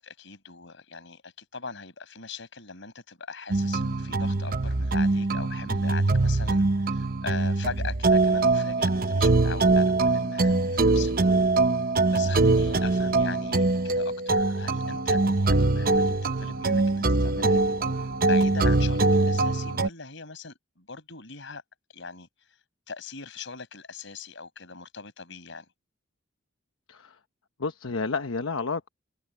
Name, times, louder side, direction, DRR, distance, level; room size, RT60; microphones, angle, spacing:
voice 1, 0.0-11.4 12.1-17.6 18.2-21.6 21.9-22.3 22.9-25.7, left 4 dB, 65° left, 6.0 m, -40 dB
sound 1, 3.5-19.9, right 3 dB, 45° right, 0.9 m, -23 dB
voice 2, 27.6-28.9, left 4 dB, 85° left, 1.0 m, -30 dB
head